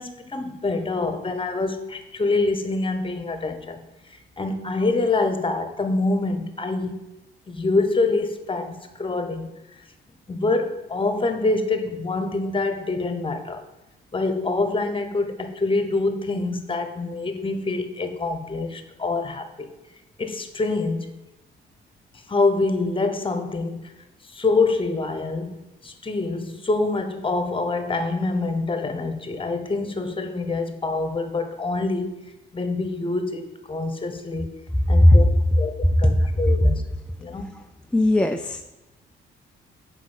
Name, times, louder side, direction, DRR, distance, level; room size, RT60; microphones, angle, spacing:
voice 1, 0.0-3.8 4.1-7.0 7.5-9.5 10.3-13.6 14.1-19.7 20.2-21.1 22.3-23.9 24.2-25.6 25.8-32.2 32.5-34.5 34.9-35.3 35.6-36.8 37.2-37.5, left 3 dB, 25° left, 1.2 m, -25 dB
voice 2, 37.9-38.7, left 1 dB, 5° left, 0.4 m, -16 dB
7.4 x 5.0 x 7.3 m
cardioid pair, 90°, 20 cm